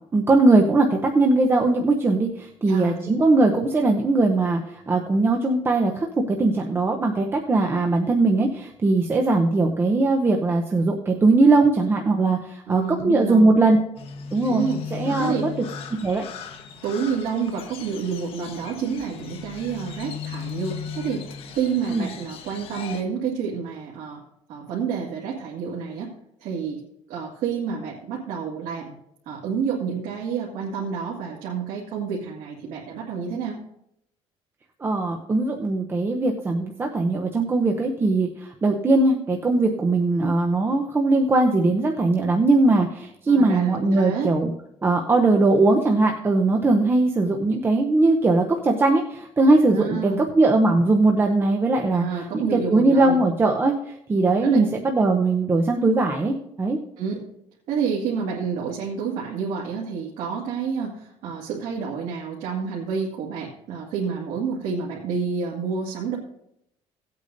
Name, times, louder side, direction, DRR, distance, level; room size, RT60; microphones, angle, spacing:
voice 1, 0.1-4.6 4.9-13.8 14.3-15.5 16.0-16.2 21.9-22.1 34.8-44.5 44.8-52.0 52.5-53.7 54.1-56.8, right 2 dB, 20° right, 2 dB, 0.7 m, -20 dB
voice 2, 2.6-3.1 12.7-13.5 14.5-14.8 15.2-15.5 16.8-24.2 24.5-26.1 26.4-26.8 27.1-29.0 29.3-33.6 43.3-44.3 49.7-50.2 51.9-53.2 54.4-54.7 57.0-57.3 57.7-66.2, right 6 dB, 85° right, -4 dB, 2.0 m, -29 dB
Crow, 14.0-23.0, left 7 dB, 55° left, 1.1 m, -37 dB
17.5 x 8.4 x 2.6 m, 0.76 s
cardioid pair, 155°, 12 cm